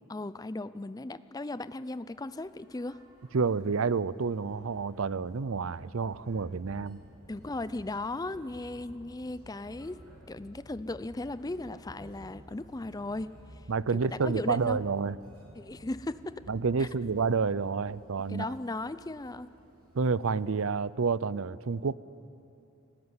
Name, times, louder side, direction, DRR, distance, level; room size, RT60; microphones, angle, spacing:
voice 1, 0.1-3.0 7.3-10.0 10.3-13.6 14.0-14.8 15.5-16.4 16.8-16.9 18.3-19.5, left 2 dB, 15° left, 15 dB, 0.5 m, -37 dB
sound 1, 1.8-21.0, equal, 80° right, 6.8 m, -54 dB
voice 2, 3.3-7.0 13.7-15.2 16.5-18.4 19.9-22.0, right 5 dB, 65° right, 19 dB, 0.5 m, -29 dB
24.0 x 19.0 x 9.7 m, 2.7 s
head